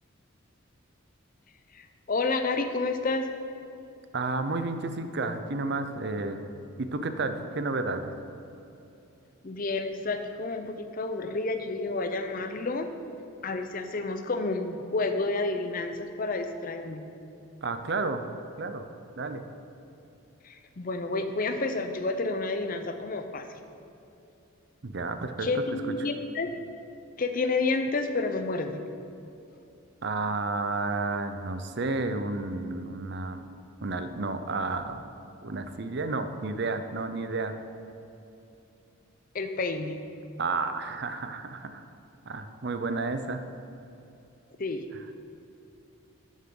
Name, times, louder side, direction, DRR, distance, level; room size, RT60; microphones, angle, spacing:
voice 1, 1.7-3.3 9.4-12.9 13.4-17.0 20.4-23.5 25.4-26.5 27.2-28.8 39.3-40.0 44.6-44.8, left 3 dB, 40° left, 7 dB, 0.6 m, -30 dB
voice 2, 4.1-6.5 6.8-8.2 17.6-18.2 18.6-18.8 19.2-19.5 24.8-25.5 30.0-33.5 33.8-35.1 35.4-37.5 40.4-41.8 42.3-43.4 44.9-45.0, right 3 dB, 50° right, 8 dB, 0.6 m, -31 dB
12.5 x 7.3 x 3.8 m, 2.8 s
head